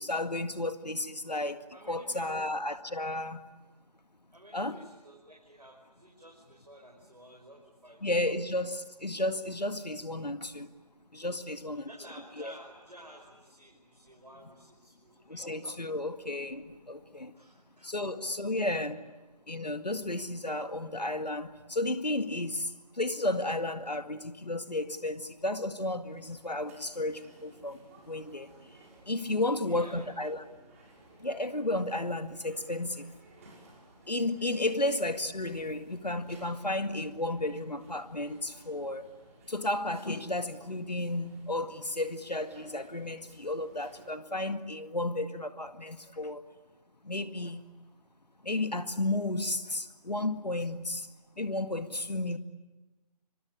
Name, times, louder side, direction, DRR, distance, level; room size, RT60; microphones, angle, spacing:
voice 1, 0.0-3.5 4.5-4.8 8.0-10.7 11.1-11.9 12.4-12.5 15.3-17.3 17.8-19.1 19.5-28.8 29.1-30.4 31.2-33.1 34.1-39.1 39.5-46.5 47.0-47.7 48.4-51.1 51.4-52.4, left 2 dB, 80° left, 2.1 m, -33 dB
voice 2, 1.7-2.4 4.3-8.0 11.2-15.5 17.3-17.9 29.3-30.1 34.7-34.8, right 1 dB, 85° right, 5.6 m, -53 dB
sound 1, 26.0-44.1, right 2 dB, 20° right, 5.6 m, -58 dB
25.0 x 23.5 x 9.9 m
figure-of-eight pair, 155°, 21 cm